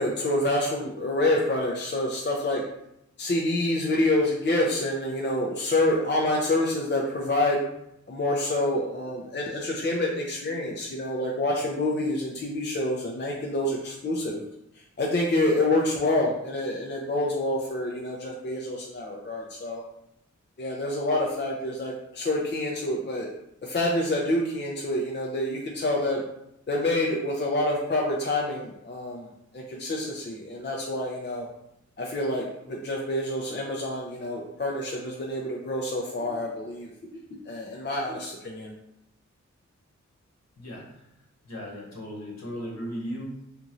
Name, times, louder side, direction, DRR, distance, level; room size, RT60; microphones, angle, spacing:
voice 1, 0.0-2.6 3.2-7.6 8.1-14.4 15.0-19.8 20.6-23.3 23.6-26.2 26.7-29.3 29.5-31.5 32.0-37.2 37.5-38.7, left 1 dB, 35° left, -2 dB, 0.5 m, -27 dB
voice 2, 40.6-41.1 41.4-43.6, equal, 60° left, -4 dB, 1.1 m, -37 dB
2.9 x 2.6 x 2.5 m, 0.82 s
cardioid pair, 45°, 30 cm